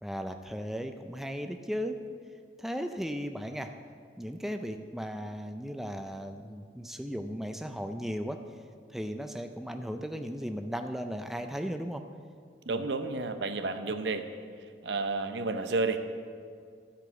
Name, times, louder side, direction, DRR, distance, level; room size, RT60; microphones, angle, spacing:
voice 1, 0.0-2.0 2.6-3.7 4.2-8.4 8.9-12.1 12.7-12.8, equal, ahead, 6 dB, 0.3 m, -36 dB
voice 2, 12.7-14.2 14.8-16.0, right 3 dB, 75° right, 9 dB, 0.6 m, -31 dB
13.0 x 5.0 x 6.8 m, 2.1 s
head